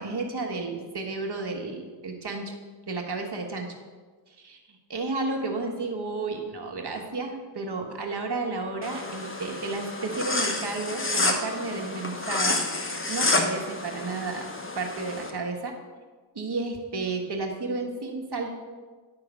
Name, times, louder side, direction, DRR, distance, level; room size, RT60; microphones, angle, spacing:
voice 1, 0.0-2.5 2.9-3.7 4.4-12.6 13.1-14.5 14.7-15.7 16.3-18.5, right 3 dB, 60° right, 2 dB, 1.5 m, -32 dB
sound 1, 8.8-15.3, left 2 dB, 30° left, 1.1 m, -29 dB
11.0 x 3.9 x 6.2 m, 1.4 s
cardioid pair, 50°, 45 cm